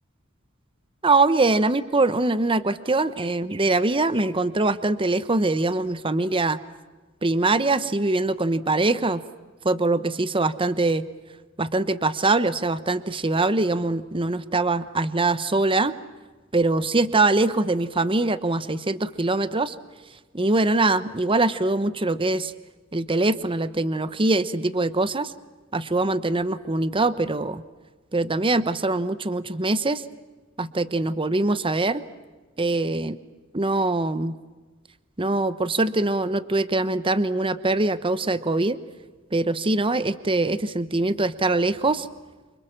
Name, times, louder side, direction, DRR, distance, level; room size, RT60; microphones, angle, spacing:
voice 1, 1.0-6.6 7.2-9.2 9.6-11.0 11.6-15.9 16.5-19.7 20.3-22.5 22.9-25.3 25.7-27.6 28.1-30.0 30.6-32.0 32.6-33.2 33.5-34.3 35.2-38.8 39.3-42.1, right 2 dB, 25° right, 14 dB, 1.0 m, -23 dB
29.0 x 26.5 x 7.4 m, 1.3 s
head